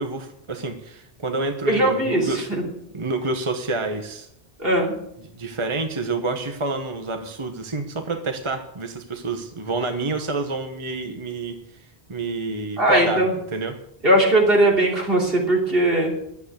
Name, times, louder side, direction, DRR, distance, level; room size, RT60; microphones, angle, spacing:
voice 1, 0.0-2.5 2.9-4.3 5.3-13.2 13.5-13.8, right 3 dB, 30° right, 5 dB, 1.1 m, -28 dB
voice 2, 1.7-2.6 4.6-4.9 12.8-13.3 14.0-16.2, right 1 dB, 60° right, -2 dB, 3.4 m, -19 dB
11.0 x 8.3 x 8.2 m, 0.77 s
omnidirectional pair, 1.1 m